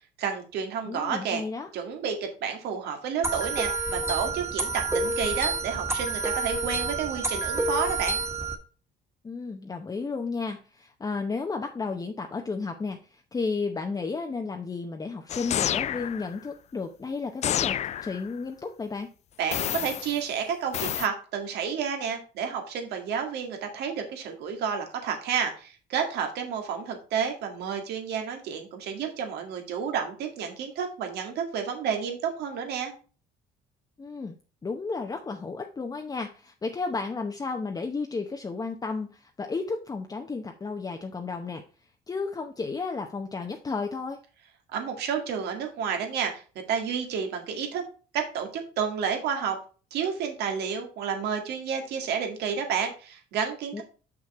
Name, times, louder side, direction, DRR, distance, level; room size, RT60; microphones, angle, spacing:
voice 1, 0.2-1.4 1.7-8.2 19.4-32.9 44.7-46.4 46.7-47.8 48.1-49.6 49.9-53.8, right 7 dB, 75° right, 4 dB, 2.0 m, -30 dB
voice 2, 0.8-1.7 9.2-19.1 34.0-34.4 34.6-41.6 42.1-44.2 53.7-53.8, left 4 dB, 20° left, 3 dB, 0.8 m, -33 dB
sound 1, 3.2-8.5, right 3 dB, 15° right, 1.5 m, -29 dB
sound 2, 15.3-16.3 17.4-18.3 19.5-20.2 20.7-21.1, left 11 dB, 40° left, 0.4 m, -29 dB
6.3 x 6.1 x 4.2 m, 0.37 s
cardioid pair, 110°, 17 cm